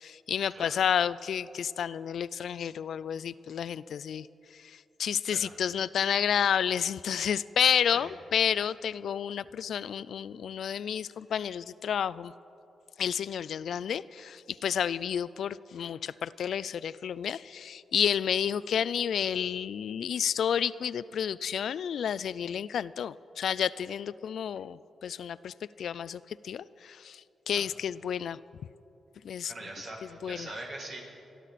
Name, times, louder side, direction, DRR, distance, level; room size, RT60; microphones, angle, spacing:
voice 1, 0.0-4.3 4.5-12.3 13.0-28.4 29.2-29.5 30.2-30.5, left 8 dB, 75° left, 18 dB, 0.3 m, -30 dB
voice 2, 29.5-31.0, right 2 dB, 65° right, -3 dB, 4.8 m, -42 dB
27.0 x 11.5 x 4.1 m, 2.8 s
cardioid pair, 70°, 0 cm